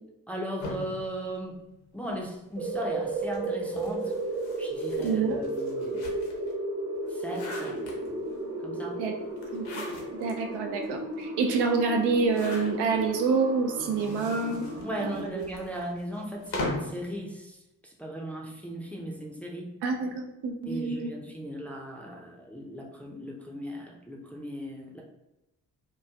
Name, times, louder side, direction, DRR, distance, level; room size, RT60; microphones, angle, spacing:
voice 1, 0.3-1.6 1.9-4.1 4.6-6.1 7.1-7.8 8.6-9.0 14.8-19.7 20.6-25.0, right 1 dB, 5° left, -2 dB, 0.5 m, -37 dB
sound 1, 0.6-2.2 3.1-6.5 7.0-8.4 9.4-10.3 10.8-10.9 11.1-11.2 12.1-13.1 13.8-17.0, left 2 dB, 60° left, 0.9 m, -40 dB
sound 2, 2.5-15.2, right 2 dB, 35° right, 1.0 m, -34 dB
voice 2, 5.0-5.4 9.0-9.1 9.5-9.8 10.1-14.6 15.0-15.3 19.8-21.1, right 4 dB, 65° right, 3 dB, 0.5 m, -27 dB
3.0 x 2.4 x 2.3 m, 0.94 s
hypercardioid pair, 40°, 44 cm